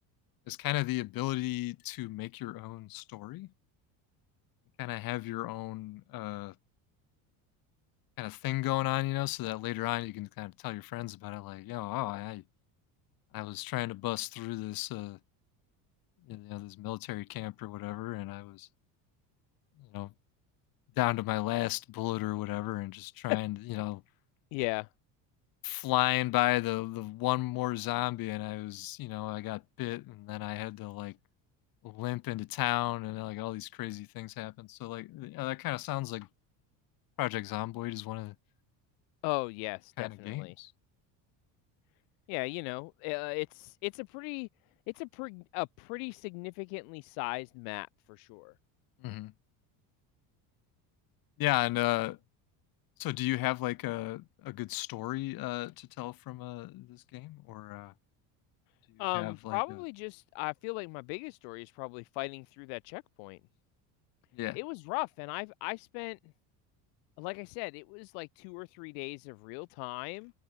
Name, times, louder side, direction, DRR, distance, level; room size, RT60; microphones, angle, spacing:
voice 1, 0.5-3.5 4.8-6.5 8.2-12.4 13.3-15.2 16.3-18.7 19.9-20.1 21.0-24.0 25.6-31.2 31.8-36.3 37.2-38.3 40.0-40.7 49.0-49.3 51.4-52.2 53.0-57.9 59.1-59.6 64.3-64.6, left 18 dB, 60° left, 7.9 m, -34 dB
voice 2, 24.5-24.9 39.2-40.5 42.3-44.5 44.9-48.5 59.0-63.4 64.5-66.2 67.2-70.3, left 40 dB or more, 85° left, 4.1 m, -37 dB
cardioid pair, 150°, 40 cm